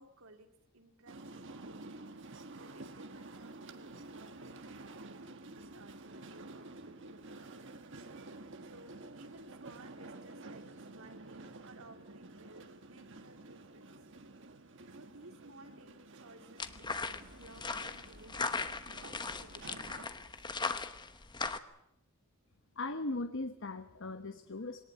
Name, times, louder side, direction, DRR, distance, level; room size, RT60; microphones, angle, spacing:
voice 1, 0.0-1.9 2.5-5.3 5.6-7.8 8.6-13.9 14.9-20.5, right 2 dB, 85° right, 5 dB, 2.6 m, -58 dB
sound 1, 1.1-20.1, right 2 dB, 60° right, 1.6 m, -50 dB
sound 2, 16.6-21.6, left 4 dB, 20° left, 1.0 m, -38 dB
voice 2, 22.8-24.8, left 2 dB, 60° left, 8 dB, 1.0 m, -38 dB
21.5 x 18.5 x 8.5 m, 0.83 s
head